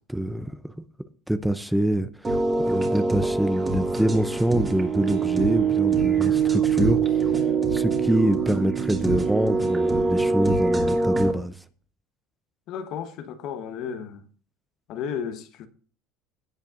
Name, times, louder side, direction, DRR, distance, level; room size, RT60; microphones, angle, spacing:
voice 1, 0.1-0.7 1.3-7.2 7.7-11.6, right 1 dB, 5° right, 0.6 m, -25 dB
sound 1, 2.2-11.3, right 4 dB, 20° right, 2.5 m, -24 dB
voice 2, 12.7-14.2 14.9-15.7, left 7 dB, 55° left, 1.2 m, -33 dB
17.5 x 8.1 x 2.6 m
supercardioid pair, 115°, 0 cm